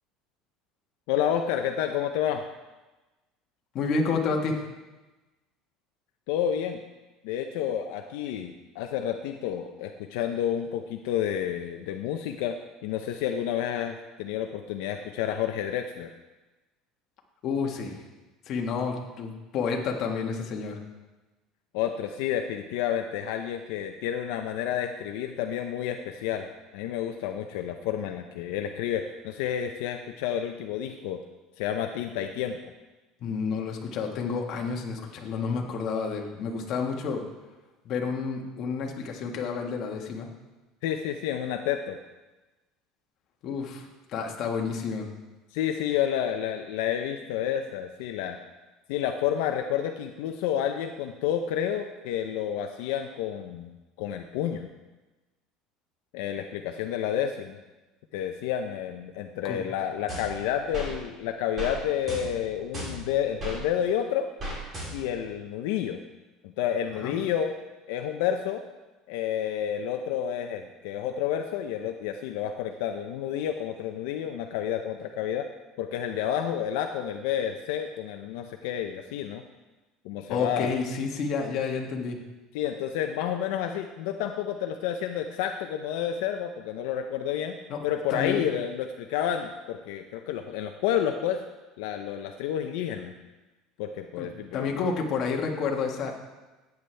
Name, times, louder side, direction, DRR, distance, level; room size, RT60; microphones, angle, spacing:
voice 1, 1.1-2.4 6.3-6.8 7.2-12.6 12.8-16.1 21.7-26.5 26.7-31.2 31.6-32.7 40.8-42.0 45.5-48.4 48.9-53.7 54.0-54.7 56.1-57.6 58.1-64.3 64.9-66.0 66.4-67.5 67.9-68.6 69.1-75.4 75.8-79.4 80.0-80.7 82.5-87.6 87.8-91.4 91.8-93.1 93.8-94.7, left 9 dB, 80° left, 5 dB, 0.6 m, -30 dB
voice 2, 3.7-4.6 17.4-18.0 18.5-20.8 33.2-37.2 37.8-40.3 43.4-45.1 59.4-59.7 66.9-67.2 80.3-82.2 87.7-87.8 88.1-88.4 94.2-94.3 94.5-96.1, left 5 dB, 45° left, 1 dB, 1.5 m, -30 dB
sound 1, 60.1-60.9 61.6-61.8 62.1-63.6 64.4-65.2, equal, 25° right, 3.2 m, -36 dB
13.5 x 9.2 x 3.4 m, 1.1 s
cardioid pair, 155°, 0 cm